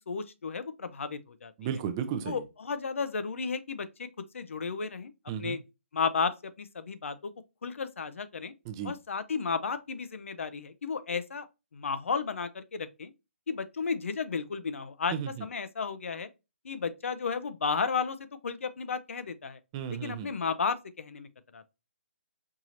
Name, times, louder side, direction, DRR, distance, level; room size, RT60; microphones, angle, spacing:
voice 1, 0.1-1.5 2.3-4.1 4.3-5.1 5.4-5.6 5.9-7.3 7.6-8.5 8.8-11.5 11.7-13.1 13.5-15.1 15.4-16.3 16.6-19.6 19.9-21.6, left 5 dB, 75° left, 0.6 m, -33 dB
voice 2, 1.6-2.4 5.3-5.6 8.7-8.9 15.1-15.3 19.7-20.3, right 8 dB, 20° right, 0.4 m, -34 dB
4.7 x 2.9 x 2.5 m
hypercardioid pair, 160°, 7 cm